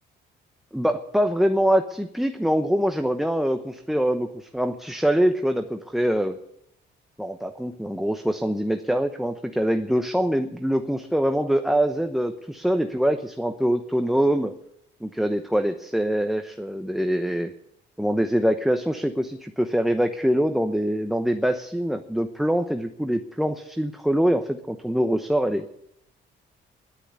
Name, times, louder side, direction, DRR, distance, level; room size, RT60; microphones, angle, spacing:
voice 1, 0.7-6.4 7.2-14.5 15.0-17.5 18.0-25.7, equal, ahead, 6 dB, 0.9 m, -24 dB
11.5 x 9.9 x 9.5 m, 0.75 s
cardioid pair, 90°, 20 cm